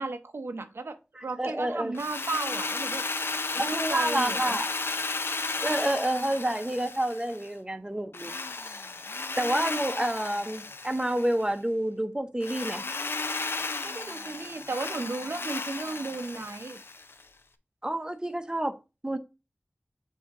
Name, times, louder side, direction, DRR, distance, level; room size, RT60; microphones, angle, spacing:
voice 1, 0.0-3.0 3.6-4.6 13.8-16.8, right 3 dB, 85° right, 0.7 m, -35 dB
voice 2, 1.2-2.0 3.5-4.7 5.6-8.3 8.6-8.7 9.4-12.8 17.8-18.8 19.0-19.2, right 1 dB, 20° right, 0.7 m, -29 dB
Drill, 1.9-7.5 8.1-11.4 12.4-17.2, left 3 dB, 80° left, 0.5 m, -34 dB
7.3 x 2.8 x 4.6 m
wide cardioid pair, 60°, 4 cm